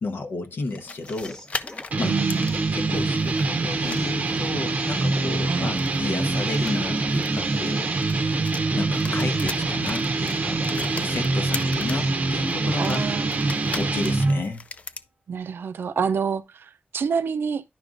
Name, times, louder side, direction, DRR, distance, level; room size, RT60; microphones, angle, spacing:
voice 1, 0.0-2.2 2.7-8.2 8.8-13.0 13.8-14.7, left 3 dB, 75° left, 1.0 m, -32 dB
sound 1, 0.6-14.3, left 1 dB, 25° left, 0.8 m, -47 dB
sound 2, 0.7-3.5 3.8-4.6 5.7-8.6 8.9-12.1 12.5-15.1, left 3 dB, 40° left, 0.4 m, -38 dB
sound 3, 1.9-14.4, right 3 dB, 45° right, 0.6 m, -25 dB
voice 2, 2.0-2.5 5.4-5.7 8.7-8.9 12.8-13.8 15.3-17.6, right 6 dB, 90° right, 0.4 m, -28 dB
10.5 x 5.0 x 2.5 m
wide cardioid pair, 155°, 4 cm